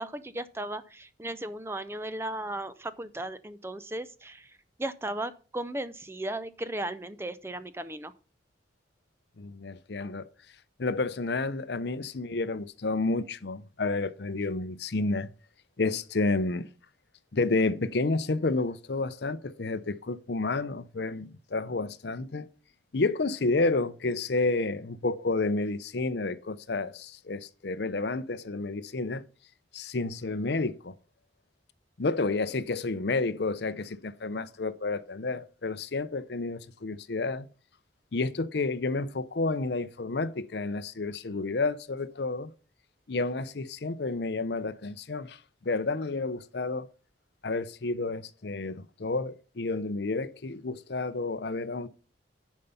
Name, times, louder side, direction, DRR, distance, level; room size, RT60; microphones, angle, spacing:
voice 1, 0.0-8.1, right 1 dB, 15° right, 0.5 m, -36 dB
voice 2, 9.4-10.2 10.8-15.3 15.8-16.7 17.3-22.5 22.9-29.2 29.7-30.9 32.0-37.5 38.1-42.5 43.1-45.4 45.6-46.9 47.4-51.9, left 3 dB, 60° left, 0.6 m, -30 dB
10.5 x 5.4 x 5.6 m
head